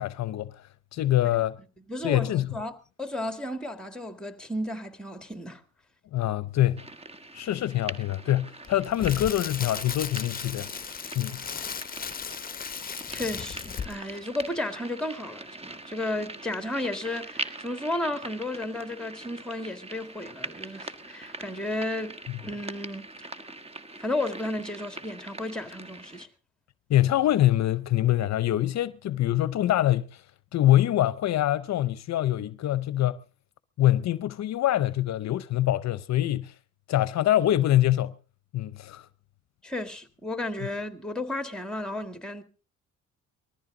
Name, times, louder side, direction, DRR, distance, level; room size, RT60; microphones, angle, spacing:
voice 1, 0.0-1.6 2.0-2.5 6.1-6.8 7.3-10.7 11.1-11.4 26.9-30.2 30.5-33.2 33.8-36.5 36.9-38.1 38.5-39.1, left 13 dB, 60° left, 0.6 m, -24 dB
voice 2, 1.9-5.6 13.1-23.1 24.0-26.3 39.6-42.4, left 1 dB, 5° left, 2.0 m, -33 dB
sound 1, 6.8-26.2, right 2 dB, 20° right, 1.3 m, -42 dB
Crackle, 8.6-14.1 14.4-14.6, left 7 dB, 30° left, 0.8 m, -36 dB
20.5 x 14.0 x 3.8 m
cardioid pair, 90°, 30 cm